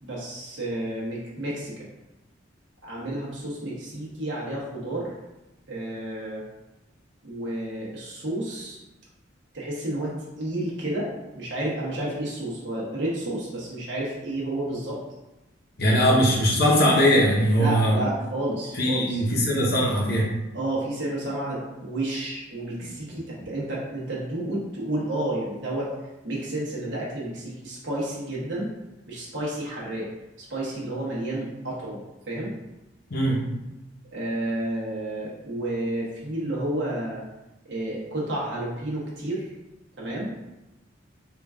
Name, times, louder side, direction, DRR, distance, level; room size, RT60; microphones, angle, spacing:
voice 1, 0.0-1.9 2.8-5.1 5.7-6.4 7.2-8.8 9.5-15.0 15.9-16.1 17.5-19.2 20.5-25.9 26.2-28.7 29.1-30.1 30.5-32.5 34.1-37.2 37.7-39.5 40.0-40.3, right 1 dB, 70° right, -5 dB, 1.0 m, -31 dB
voice 2, 15.8-18.0 18.8-20.3 33.1-33.4, equal, 55° left, -2 dB, 0.8 m, -20 dB
3.7 x 2.4 x 3.5 m, 1.0 s
head